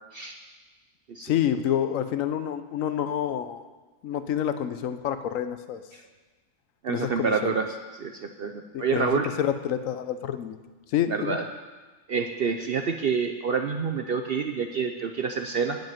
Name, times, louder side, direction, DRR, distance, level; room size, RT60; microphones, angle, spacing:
voice 1, 1.2-3.6 4.0-5.8 6.9-7.5 8.7-9.1 9.4-10.6 10.9-11.4, left 10 dB, 85° left, 11 dB, 1.1 m, -28 dB
voice 2, 6.8-7.7 8.0-9.3 11.1-11.4 12.1-15.8, right 5 dB, 55° right, 5 dB, 0.8 m, -27 dB
9.2 x 7.7 x 9.1 m, 1.3 s
omnidirectional pair, 1.3 m